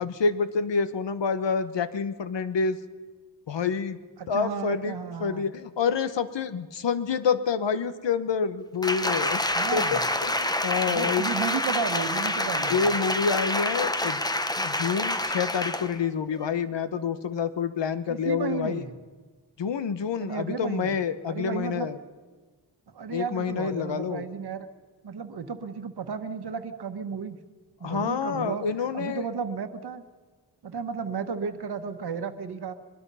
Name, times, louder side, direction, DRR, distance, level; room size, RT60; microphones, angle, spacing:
voice 1, 0.0-2.8 3.5-4.0 4.3-9.4 9.7-11.2 12.7-14.2 14.6-18.8 19.6-22.0 23.1-24.2 27.8-29.2, left 6 dB, 80° left, 12 dB, 1.2 m, -28 dB
voice 2, 4.2-5.5 9.5-10.0 10.8-12.8 18.1-18.9 20.2-21.0 21.3-21.9 22.9-24.7 25.0-27.4 27.8-28.7 28.9-30.0 30.6-32.7, right 5 dB, 65° right, 8 dB, 1.3 m, -33 dB
Applause, 8.8-16.0 16.4-16.5, left 1 dB, 10° left, 0.8 m, -27 dB
22.5 x 22.0 x 5.6 m, 1.4 s
wide cardioid pair, 160°, 42 cm